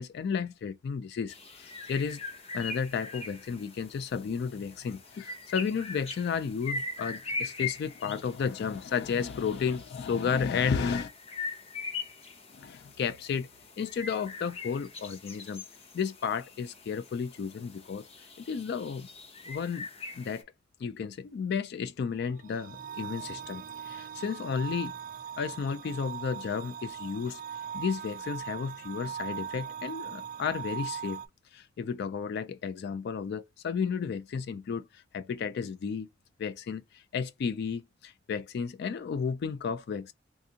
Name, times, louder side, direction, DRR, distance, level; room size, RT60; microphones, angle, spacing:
voice 1, 0.0-2.2 2.5-11.1 12.5-13.5 13.8-15.6 15.9-18.1 18.4-19.1 19.5-19.8 20.1-20.5 20.8-24.9 25.4-27.4 27.7-31.2 31.5-36.1 36.4-40.1, left 6 dB, 60° left, 0.3 m, -33 dB
sound 1, 1.3-20.4, left 4 dB, 30° left, 0.8 m, -42 dB
sound 2, 22.2-31.3, right 8 dB, 45° right, 0.4 m, -40 dB
3.6 x 2.5 x 2.7 m
head